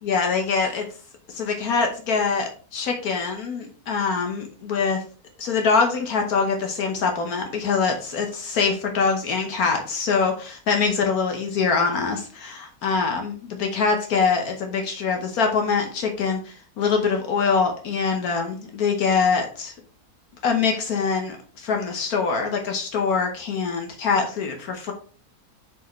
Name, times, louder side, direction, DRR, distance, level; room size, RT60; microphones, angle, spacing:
voice 1, 0.0-0.9 1.3-5.0 5.4-19.7 20.4-24.9, left 5 dB, 75° left, 3 dB, 1.4 m, -24 dB
7.9 x 4.8 x 3.1 m, 0.39 s
omnidirectional pair, 1.6 m